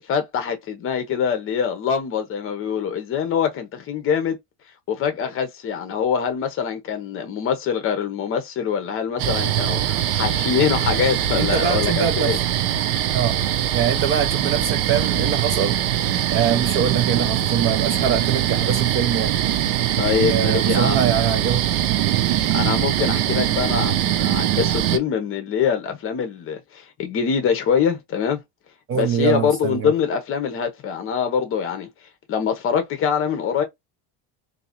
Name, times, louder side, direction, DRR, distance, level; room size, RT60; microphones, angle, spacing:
voice 1, 0.0-4.4 4.9-12.4 20.0-21.0 22.5-28.4 28.9-31.9 32.3-33.6, left 7 dB, 30° left, 0.8 m, -24 dB
sound 1, 9.2-25.0, right 11 dB, 85° right, 0.7 m, -22 dB
voice 2, 11.3-12.4 13.1-13.4 13.7-15.8 16.3-19.3 20.3-21.7 28.9-29.9, right 8 dB, 35° right, 0.4 m, -23 dB
3.8 x 2.7 x 2.9 m
cardioid pair, 170°, 41 cm